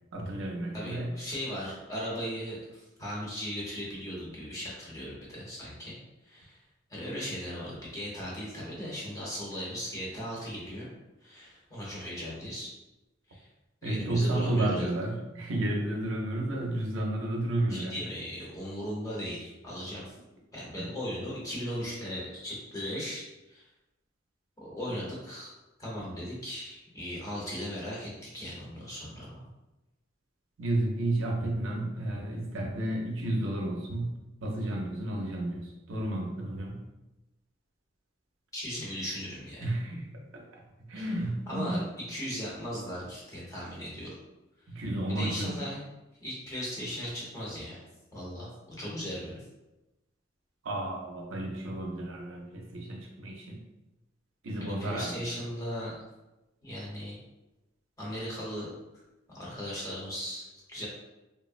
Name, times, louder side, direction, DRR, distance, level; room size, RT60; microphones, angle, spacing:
voice 1, 0.1-1.1 13.8-18.0 20.8-20.9 30.6-34.1 34.4-36.8 39.6-41.8 44.7-45.6 50.6-53.6 54.4-55.3, right 1 dB, 70° right, 0 dB, 0.5 m, -32 dB
voice 2, 0.7-6.0 6.2-6.6 6.9-10.9 11.2-12.7 13.3-13.5 13.8-14.9 17.7-20.1 20.5-23.6 24.6-25.5 25.8-29.4 38.5-39.7 40.9-41.2 41.5-44.2 44.7-44.8 45.1-45.8 46.2-47.8 48.1-49.4 54.6-56.0 56.6-57.2 58.0-58.7 59.3-60.9, equal, 15° left, -6 dB, 0.9 m, -37 dB
3.4 x 2.0 x 2.4 m, 1.0 s
head